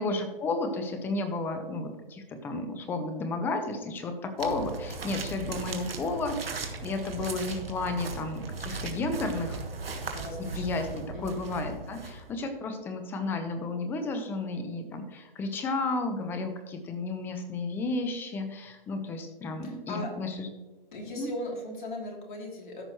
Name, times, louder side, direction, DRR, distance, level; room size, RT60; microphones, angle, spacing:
voice 1, 0.0-6.6 6.8-9.6 10.5-20.5 21.1-21.3, left 3 dB, 5° left, 7 dB, 0.5 m, -32 dB
sound 1, 4.4-12.5, right 3 dB, 80° right, 1.5 m, -38 dB
voice 2, 10.1-11.4 19.6-20.1 20.9-22.8, left 1 dB, 55° left, -1 dB, 3.0 m, -39 dB
13.5 x 6.1 x 3.0 m, 1.2 s
hypercardioid pair, 135°, 29 cm